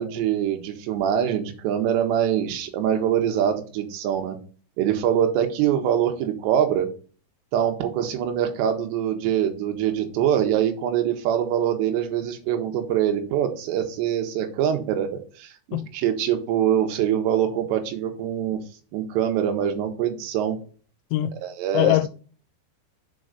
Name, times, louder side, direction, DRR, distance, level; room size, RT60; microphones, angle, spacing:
voice 1, 0.0-4.4 4.8-6.9 7.5-18.6 18.9-20.6 21.4-22.0, right 10 dB, 75° right, 3.1 m, -24 dB
voice 2, 21.1-21.4 21.7-22.1, left 16 dB, 85° left, 2.9 m, -22 dB
7.0 x 3.9 x 6.4 m
omnidirectional pair, 5.3 m